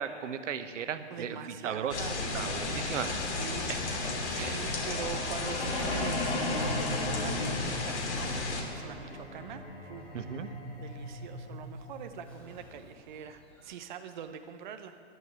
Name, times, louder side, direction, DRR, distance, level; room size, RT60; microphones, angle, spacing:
voice 1, 0.0-2.0 2.3-3.1 4.3-4.8 10.1-10.5, right 8 dB, 90° right, 10 dB, 1.1 m, -36 dB
voice 2, 1.1-3.7 4.2-10.1 10.4-14.9, right 8 dB, 40° right, 8 dB, 0.6 m, -44 dB
sound 1, 1.9-8.6, left 3 dB, 70° left, 2.9 m, -33 dB
sound 2, 4.6-12.6, left 1 dB, 50° left, 3.6 m, -38 dB
sound 3, 4.6-13.7, left 1 dB, 5° left, 0.8 m, -48 dB
11.0 x 9.5 x 9.7 m, 2.3 s
hypercardioid pair, 175°, 36 cm